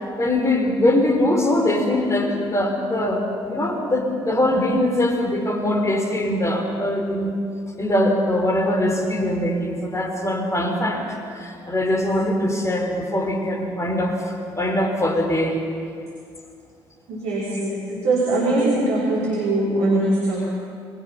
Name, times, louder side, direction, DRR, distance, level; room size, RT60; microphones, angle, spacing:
voice 1, 0.2-7.3 7.8-15.6, left 1 dB, 25° left, 3 dB, 5.7 m, -22 dB
voice 2, 17.1-20.5, right 2 dB, 65° right, -5 dB, 4.4 m, -21 dB
28.5 x 22.0 x 5.9 m, 2.3 s
figure-of-eight pair, 45°, 12 cm